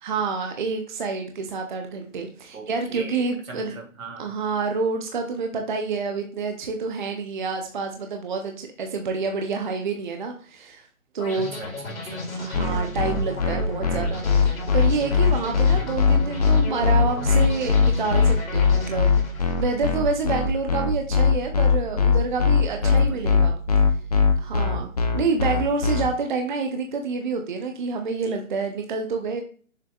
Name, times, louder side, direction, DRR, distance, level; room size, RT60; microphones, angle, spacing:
voice 1, 0.0-3.8 4.2-10.9 11.1-11.5 12.4-19.2 19.6-23.6 24.4-24.9 25.1-29.4, right 4 dB, 35° right, 4 dB, 0.7 m, -28 dB
voice 2, 2.5-4.3 11.4-12.3 22.7-23.4, right 3 dB, 80° right, 3 dB, 2.2 m, -40 dB
sound 1, 11.2-20.2, left 2 dB, 80° left, 2.7 m, -35 dB
sound 2, 12.5-26.0, left 6 dB, 30° left, 0.5 m, -19 dB
6.7 x 6.2 x 2.4 m, 0.42 s
hypercardioid pair, 155°, 40 cm